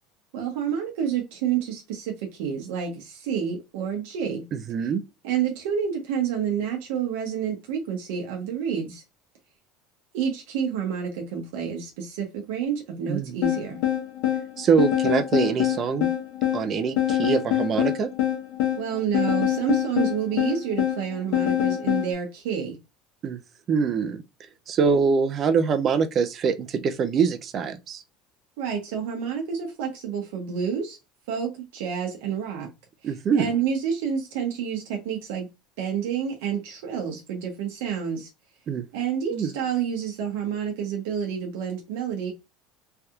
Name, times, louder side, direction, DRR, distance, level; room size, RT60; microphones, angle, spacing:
voice 1, 0.3-4.4 5.2-9.0 10.1-13.8 18.8-22.8 28.6-31.0 31.3-32.7 33.3-35.5 35.8-38.3 38.9-42.3, right 8 dB, 80° right, 0.8 m, -29 dB
voice 2, 4.5-5.0 13.1-13.3 14.6-16.1 16.5-18.1 23.2-23.4 23.7-24.2 24.7-28.0 33.0-33.5 38.7-38.8 39.3-39.5, right 6 dB, 40° right, 0.5 m, -24 dB
sound 1, 13.4-22.1, left 12 dB, 75° left, 1.1 m, -25 dB
3.3 x 2.7 x 2.4 m
supercardioid pair, 110°, 0 cm